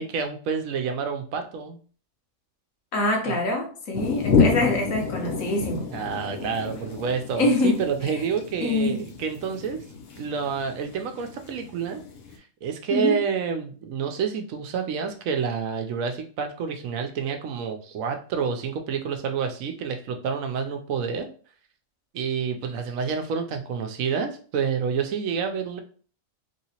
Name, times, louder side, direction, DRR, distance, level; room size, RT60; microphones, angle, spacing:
voice 1, 0.0-1.8 3.3-3.5 5.9-9.8 10.2-12.0 12.6-21.3 22.1-25.8, right 6 dB, 75° right, 1.0 m, -28 dB
voice 2, 2.9-5.9 7.3-7.8 8.6-9.0 12.9-13.2, left 2 dB, 75° left, 1.3 m, -24 dB
sound 1, 3.9-12.3, left 5 dB, 55° left, 0.8 m, -29 dB
3.3 x 2.8 x 2.8 m
omnidirectional pair, 1.4 m